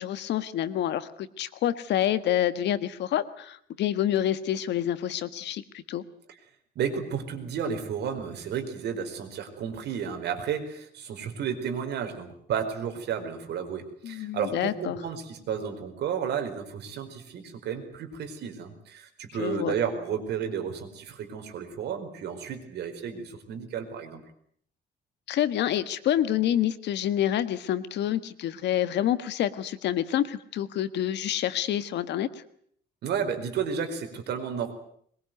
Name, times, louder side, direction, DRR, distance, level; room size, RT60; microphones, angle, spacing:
voice 1, 0.0-6.0 14.0-15.0 19.4-19.7 25.3-32.3, left 11 dB, 75° left, 13 dB, 1.6 m, -27 dB
voice 2, 6.7-24.2 33.0-34.7, right 7 dB, 65° right, 6 dB, 4.8 m, -32 dB
22.5 x 22.0 x 9.3 m, 0.64 s
cardioid pair, 175°, 18 cm